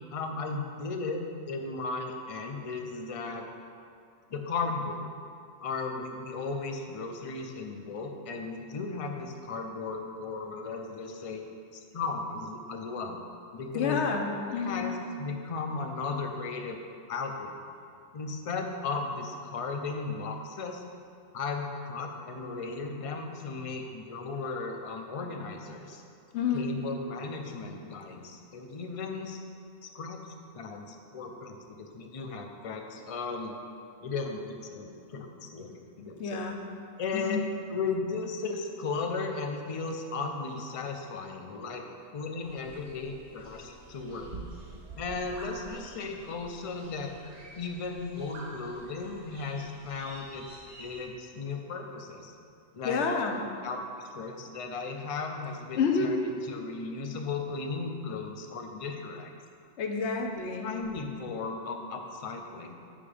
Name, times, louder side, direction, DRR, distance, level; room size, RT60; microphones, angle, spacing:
voice 1, 0.1-3.5 4.3-5.1 5.6-11.4 11.7-13.2 13.5-14.1 14.6-16.8 17.1-17.6 18.1-20.8 21.3-26.0 26.5-29.4 29.8-33.5 34.0-36.4 37.0-37.4 37.7-41.8 42.1-44.3 45.0-47.1 47.5-50.5 50.8-52.3 52.7-53.0 53.3-53.4 53.6-56.2 56.5-59.3 60.6-62.8, left 4 dB, 35° left, 3 dB, 0.6 m, -36 dB
voice 2, 13.7-14.8 26.3-26.7 36.2-36.6 37.1-37.5 52.8-53.4 55.7-56.1 59.8-60.7, left 5 dB, 70° left, 2 dB, 1.1 m, -29 dB
sound 1, 42.4-51.1, right 2 dB, 50° right, 1.1 m, -48 dB
9.2 x 4.9 x 5.0 m, 2.4 s
omnidirectional pair, 1.2 m